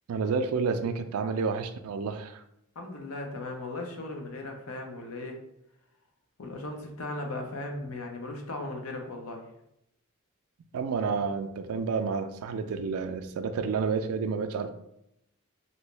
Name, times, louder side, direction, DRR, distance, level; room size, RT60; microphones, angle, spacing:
voice 1, 0.1-2.4 10.7-14.7, right 5 dB, 80° right, 8 dB, 0.4 m, -30 dB
voice 2, 2.8-5.4 6.4-9.4, left 2 dB, 70° left, 2 dB, 0.7 m, -37 dB
2.9 x 2.6 x 3.2 m, 0.80 s
head